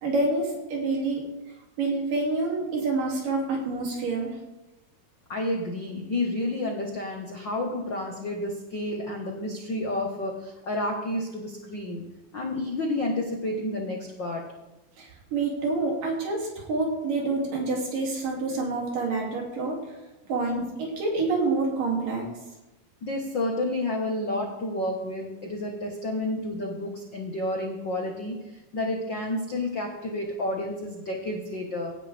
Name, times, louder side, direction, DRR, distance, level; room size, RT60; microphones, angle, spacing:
voice 1, 0.0-1.2 1.8-4.3 15.0-15.1 15.3-19.8 20.3-22.3, right 3 dB, 60° right, -1 dB, 4.2 m, -27 dB
voice 2, 5.3-12.0 12.3-14.5 23.0-31.9, left 1 dB, 65° left, 0 dB, 1.1 m, -30 dB
17.5 x 10.5 x 3.5 m, 1.0 s
omnidirectional pair, 4.4 m